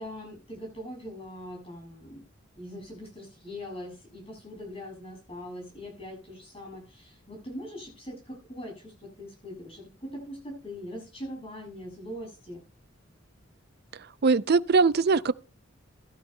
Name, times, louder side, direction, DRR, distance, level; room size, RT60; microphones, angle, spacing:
voice 1, 0.0-2.3 2.6-12.6, equal, 30° left, 7.0 m, -41 dB
voice 2, 14.2-15.3, right 4 dB, 55° right, 0.5 m, -21 dB
16.0 x 12.5 x 2.2 m
head